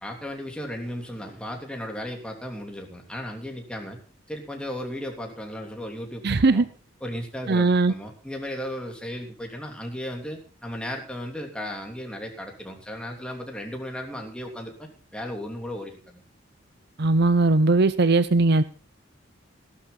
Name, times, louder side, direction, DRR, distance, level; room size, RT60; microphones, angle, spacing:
voice 1, 0.0-4.0 4.3-6.7 7.0-16.2, equal, 5° left, 2 dB, 3.1 m, -35 dB
voice 2, 6.2-6.6 7.5-7.9 17.0-18.6, right 3 dB, 60° right, 15 dB, 0.7 m, -19 dB
15.0 x 13.0 x 4.0 m, 0.36 s
head